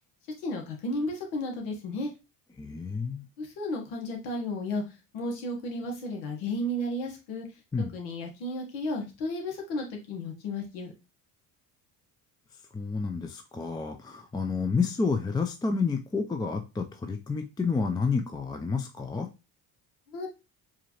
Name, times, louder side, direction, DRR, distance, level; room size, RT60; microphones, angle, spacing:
voice 1, 0.4-2.1 3.4-4.8 5.1-7.4 7.8-10.9 20.1-20.3, left 1 dB, 85° left, 2 dB, 1.3 m, -33 dB
voice 2, 2.6-3.2 7.7-7.9 12.7-19.3, left 4 dB, 10° left, 5 dB, 0.4 m, -30 dB
4.8 x 2.6 x 2.9 m, 0.28 s
supercardioid pair, 80°, 43 cm